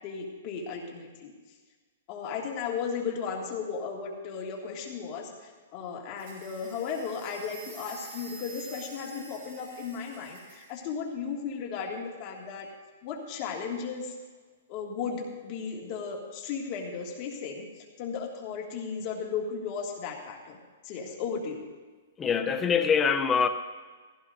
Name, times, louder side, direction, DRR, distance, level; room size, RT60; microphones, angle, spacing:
voice 1, 0.0-1.3 2.1-12.7 13.0-14.2 14.7-20.6 20.8-21.6, left 6 dB, 30° left, -1 dB, 2.0 m, -35 dB
sound 1, 6.2-10.8, right 4 dB, 40° right, 3.6 m, -48 dB
voice 2, 22.2-23.5, left 6 dB, 15° left, 7 dB, 0.6 m, -24 dB
16.0 x 15.0 x 2.6 m, 1.4 s
hypercardioid pair, 165°, 0 cm